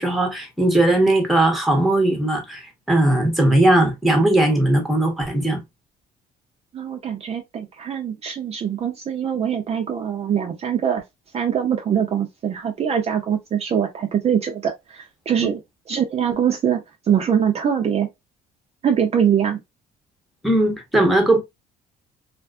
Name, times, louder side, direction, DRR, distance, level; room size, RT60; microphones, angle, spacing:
voice 1, 0.0-5.6 20.4-21.4, right 1 dB, ahead, 0.8 m, -18 dB
voice 2, 6.7-11.0 11.3-15.6 15.9-18.1 18.8-19.6, right 8 dB, 40° right, 0.5 m, -23 dB
2.5 x 2.3 x 2.2 m
cardioid pair, 110°, 17 cm